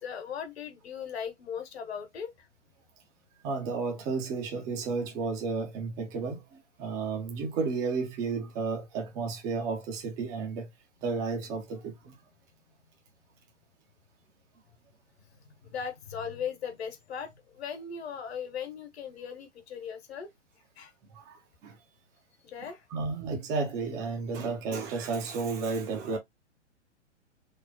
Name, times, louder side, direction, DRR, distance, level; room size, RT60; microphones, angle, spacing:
voice 1, 0.0-2.5 15.6-20.3 20.8-20.9 22.4-22.8, left 7 dB, 60° left, 1.2 m, -38 dB
voice 2, 3.4-6.4 6.8-10.7 11.0-12.1 21.1-21.3 21.6-21.8 22.9-26.2, right 4 dB, 10° right, 0.3 m, -32 dB
3.5 x 2.1 x 3.8 m
figure-of-eight pair, 115°, 36 cm